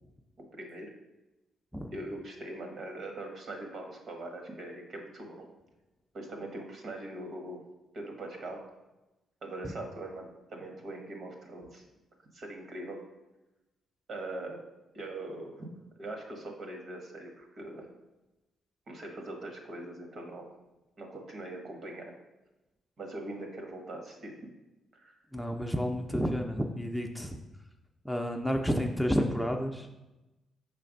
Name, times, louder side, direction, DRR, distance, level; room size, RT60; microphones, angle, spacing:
voice 1, 0.5-0.9 1.9-5.5 6.1-7.6 7.9-8.6 9.4-11.8 12.3-13.0 14.1-14.6 14.9-15.7 16.0-17.9 18.9-20.5 21.0-22.1 23.0-24.3 24.9-25.2, right 1 dB, 60° right, 3 dB, 1.3 m, -41 dB
voice 2, 25.3-27.4 28.0-29.9, equal, ahead, 3 dB, 0.5 m, -30 dB
5.5 x 3.3 x 5.2 m, 1.0 s
supercardioid pair, 65°, 0 cm